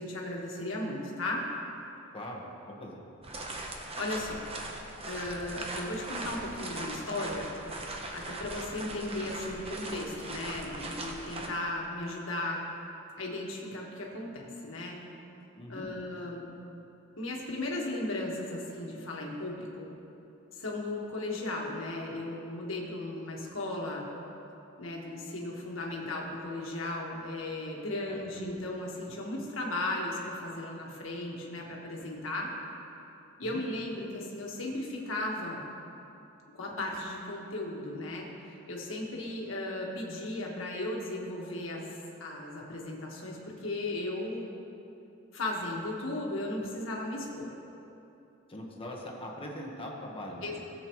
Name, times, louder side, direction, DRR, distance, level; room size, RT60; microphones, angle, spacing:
voice 1, 0.0-1.5 4.0-4.4 5.1-7.5 8.1-12.6 13.2-15.0 15.7-16.5 17.2-19.9 20.6-24.1 24.8-32.5 33.4-35.6 36.5-41.9 42.2-44.5 45.3-47.5 50.4-50.6, left 2 dB, 70° left, -2 dB, 1.6 m, -36 dB
voice 2, 2.1-3.0 15.6-15.9 28.0-28.2 33.4-33.6 48.5-50.6, left 1 dB, 25° left, -1 dB, 1.4 m, -41 dB
sound 1, 3.2-11.5, right 2 dB, 30° right, 0.9 m, -40 dB
17.5 x 7.7 x 3.1 m, 2.8 s
head